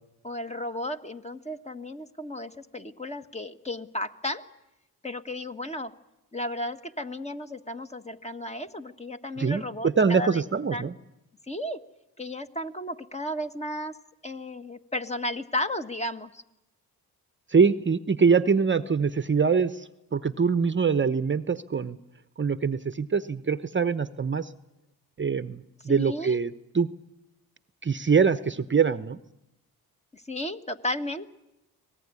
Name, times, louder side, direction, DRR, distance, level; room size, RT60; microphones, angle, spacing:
voice 1, 0.2-4.4 5.0-5.9 6.3-10.4 10.7-10.9 11.5-11.8 12.2-14.0 14.2-16.4 25.8-26.4 30.1-31.3, left 1 dB, 15° left, 8 dB, 1.5 m, -34 dB
voice 2, 9.4-10.9 17.5-22.0 22.4-24.5 25.2-26.9 27.8-29.2, right 5 dB, 30° right, 13 dB, 0.9 m, -24 dB
25.0 x 18.5 x 9.7 m, 0.92 s
cardioid pair, 70°, 38 cm